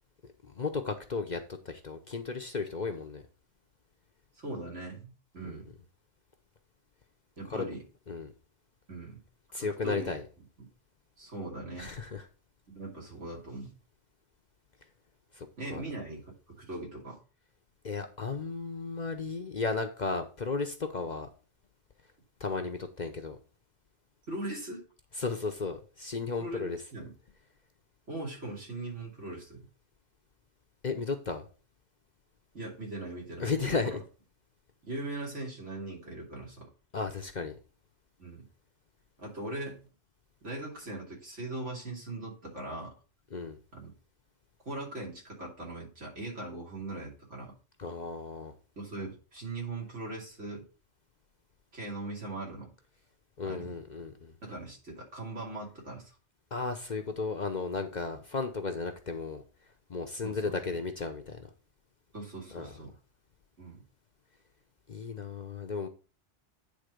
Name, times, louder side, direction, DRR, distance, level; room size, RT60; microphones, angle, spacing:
voice 1, 0.4-3.2 5.4-5.6 7.5-7.6 8.1-8.3 9.5-10.2 11.8-12.2 15.3-15.8 17.8-21.3 22.4-23.4 25.2-26.8 30.8-31.4 33.4-34.0 36.9-37.6 43.3-43.6 47.8-48.5 53.4-54.3 56.5-59.4 59.9-61.5 62.5-62.7 64.9-65.9, left 4 dB, 45° left, 6 dB, 0.8 m, -34 dB
voice 2, 4.4-5.7 7.4-7.8 8.9-9.2 9.8-10.1 11.2-11.9 12.7-13.7 15.6-17.2 24.3-24.8 26.4-27.1 28.1-29.7 32.5-34.0 34.8-36.7 38.2-38.5 39.2-39.8 40.4-42.9 43.7-43.9 44.6-47.5 48.8-50.6 51.7-52.7 53.4-53.8 54.4-56.2 60.2-60.8 62.1-62.9 63.6-63.8, right 2 dB, 75° right, -2 dB, 3.0 m, -40 dB
9.5 x 3.6 x 5.1 m, 0.37 s
omnidirectional pair, 1.2 m